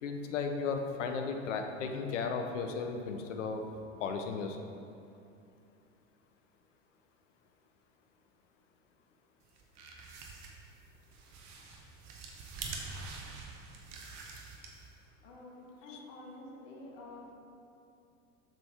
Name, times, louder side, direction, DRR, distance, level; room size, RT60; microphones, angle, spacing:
voice 1, 0.0-3.6 4.0-4.6 15.9-16.0, left 5 dB, 70° left, 5 dB, 0.9 m, -35 dB
sound 1, 9.5-15.0, right 4 dB, 45° right, 1.3 m, -46 dB
voice 2, 15.2-17.3, left 2 dB, 50° left, -2 dB, 1.4 m, -49 dB
7.8 x 7.1 x 3.6 m, 2.6 s
hypercardioid pair, 80°, 38 cm